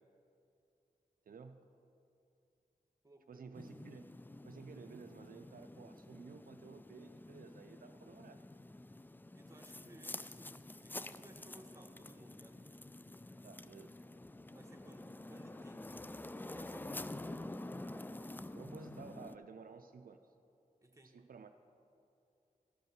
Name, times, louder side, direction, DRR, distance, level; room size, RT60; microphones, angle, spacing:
voice 1, 1.3-1.6 3.3-4.1 4.4-8.4 13.4-14.0 18.5-20.2 21.0-21.5, right 5 dB, 70° right, 7 dB, 0.4 m, -53 dB
voice 2, 3.0-3.5 9.3-12.6 14.5-15.9 16.5-17.2 20.8-21.2, right 1 dB, 20° right, 4 dB, 1.3 m, -59 dB
sound 1, 3.5-19.4, left 2 dB, 15° left, 0.3 m, -48 dB
13.0 x 5.3 x 6.6 m, 2.7 s
cardioid pair, 50°, 15 cm